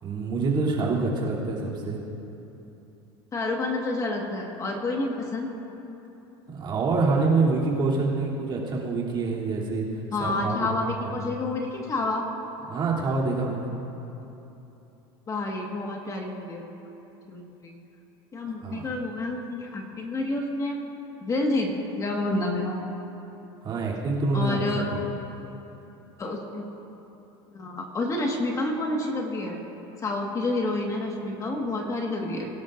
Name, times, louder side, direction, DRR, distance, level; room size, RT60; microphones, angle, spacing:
voice 1, 0.0-2.0 6.5-9.9 10.2-10.6 11.0-11.1 12.7-13.7 18.6-18.8 23.6-25.0, right 3 dB, 35° right, -5 dB, 3.1 m, -26 dB
voice 2, 3.3-5.5 10.1-12.3 15.3-16.6 17.3-17.7 18.3-20.8 21.2-22.8 24.3-24.8 26.2-26.6 27.5-29.6 30.0-32.5, left 2 dB, 25° left, 1 dB, 1.7 m, -29 dB
22.5 x 12.0 x 2.6 m, 3.0 s
supercardioid pair, 115°, 13 cm